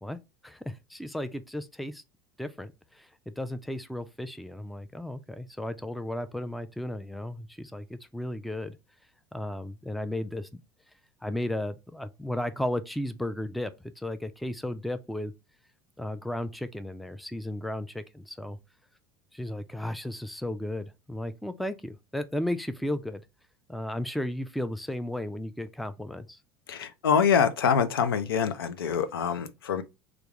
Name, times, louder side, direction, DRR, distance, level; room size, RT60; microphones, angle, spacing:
voice 1, 0.0-2.0 2.4-3.1 3.4-8.8 9.3-10.6 11.2-15.3 16.0-18.6 19.3-23.2 23.7-26.4, left 1 dB, ahead, 0.4 m, -34 dB
voice 2, 26.7-29.8, left 7 dB, 85° left, 0.4 m, -25 dB
3.4 x 2.5 x 2.9 m
hypercardioid pair, 80°, 12 cm